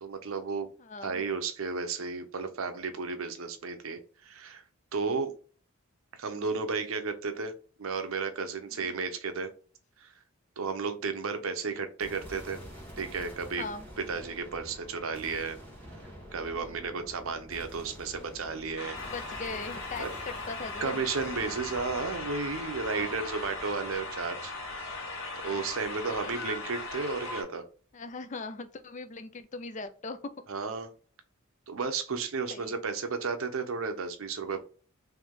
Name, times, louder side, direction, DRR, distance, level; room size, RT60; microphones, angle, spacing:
voice 1, 0.0-0.7 1.0-4.6 4.9-5.3 6.1-7.5 7.8-9.5 10.0-10.1 10.6-12.6 13.0-13.6 14.1-15.6 16.3-19.0 20.0-20.1 20.8-24.5 25.4-27.6 30.5-30.9 31.7-34.6, right 4 dB, 80° right, 7 dB, 0.7 m, -33 dB
voice 2, 0.8-1.2 8.7-8.9 13.6-13.8 16.6-16.8 19.0-21.0 22.9-23.2 25.5-25.7 27.9-30.3 32.5-32.8, left 3 dB, 35° left, 10 dB, 0.4 m, -40 dB
sound 1, 12.0-26.3, equal, 10° left, 1.4 m, -48 dB
sound 2, 18.8-27.4, left 3 dB, 65° left, 1.8 m, -38 dB
3.4 x 3.1 x 3.6 m, 0.39 s
head